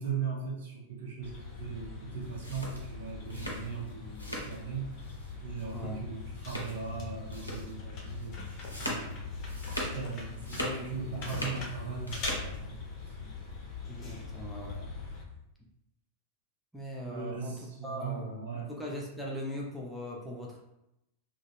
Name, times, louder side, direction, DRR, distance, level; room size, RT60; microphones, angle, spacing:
voice 1, 0.0-4.9 5.4-9.2 9.7-12.8 13.1-13.2 14.8-14.9 17.0-18.7, right 6 dB, 60° right, -3 dB, 0.7 m, -39 dB
sound 1, 1.2-15.2, left 4 dB, 35° left, 0.7 m, -41 dB
sound 2, 2.2-4.6 4.9-5.3 5.6-5.7 6.4-6.9 7.3-7.7 8.1-10.1 10.3-11.6 11.9-12.5, equal, 85° left, 0.6 m, -39 dB
voice 2, 10.6-11.3 13.9-14.8 16.7-17.5 17.8-20.6, equal, ahead, -3 dB, 0.5 m, -40 dB
2.3 x 2.2 x 3.1 m, 0.85 s
figure-of-eight pair, 90°, 0 cm